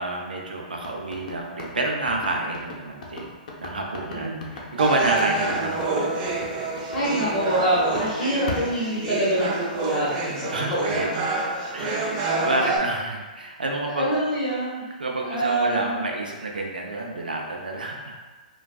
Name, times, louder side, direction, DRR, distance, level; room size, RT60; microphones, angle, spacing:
voice 1, 0.0-3.3 3.6-6.3 10.5-11.1 11.7-14.1 15.0-18.2, right 2 dB, 90° right, 0 dB, 0.5 m, -29 dB
sound 1, 0.8-8.1 8.5-9.5, left 3 dB, 60° left, 0.6 m, -36 dB
voice 2, 4.1-4.6 6.9-11.2 11.7-12.3 13.9-14.8 15.2-16.0, right 1 dB, 15° left, -13 dB, 1.5 m, -26 dB
sound 2, 4.8-12.8, right 3 dB, 35° right, 0.5 m, -28 dB
3.3 x 2.3 x 2.3 m, 1.3 s
hypercardioid pair, 125°, 5 cm